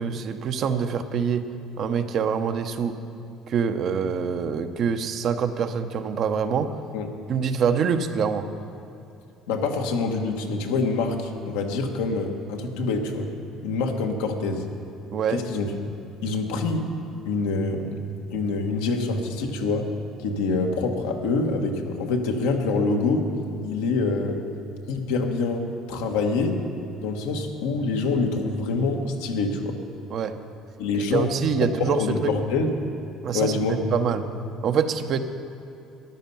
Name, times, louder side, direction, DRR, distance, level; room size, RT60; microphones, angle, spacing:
voice 1, 0.0-1.5 1.8-3.0 3.5-6.7 7.3-8.5 15.1-15.4 30.1-30.3 30.9-32.3 33.2-34.3 34.6-35.2, right 6 dB, 55° right, 8 dB, 0.9 m, -25 dB
voice 2, 9.5-13.3 13.6-14.6 15.3-15.7 16.2-16.8 17.3-18.0 18.3-19.9 20.2-23.3 23.6-24.4 24.9-26.6 27.0-29.8 30.8-31.3 31.9-32.7 33.3-33.8, left 3 dB, 85° left, 3 dB, 1.4 m, -25 dB
13.5 x 11.0 x 5.6 m, 2.6 s
supercardioid pair, 70°, 0 cm